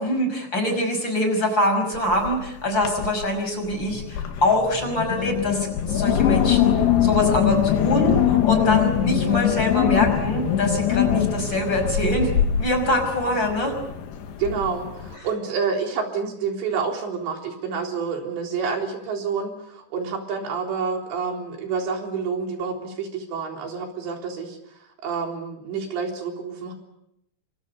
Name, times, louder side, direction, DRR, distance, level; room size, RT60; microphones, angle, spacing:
voice 1, 0.0-12.3 12.6-13.7, left 1 dB, 25° left, 5 dB, 6.1 m, -24 dB
Wind, 1.9-2.4 2.7-3.3 3.7-15.1, left 10 dB, 75° left, 3.8 m, -23 dB
voice 2, 14.4-26.7, right 5 dB, 90° right, 2 dB, 6.0 m, -28 dB
29.5 x 25.5 x 5.4 m, 0.78 s
omnidirectional pair, 4.9 m